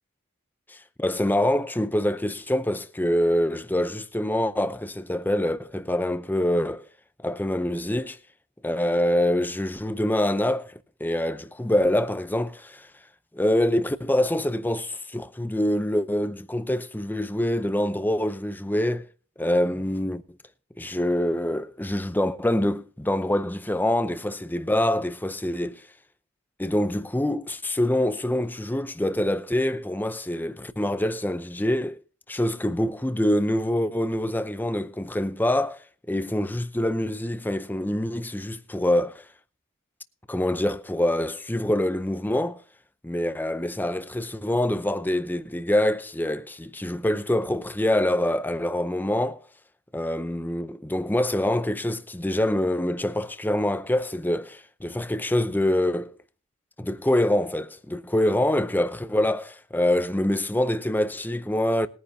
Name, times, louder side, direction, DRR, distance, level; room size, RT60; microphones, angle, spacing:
voice 1, 1.0-6.9 7.2-8.2 8.6-12.9 13.3-19.1 19.4-20.2 20.8-25.8 26.6-32.0 32.3-35.8 36.1-39.2 40.3-42.6 43.0-49.4 49.9-56.1 56.8-61.9, left 1 dB, 10° left, 0.6 m, -25 dB
20.5 x 9.9 x 2.7 m
head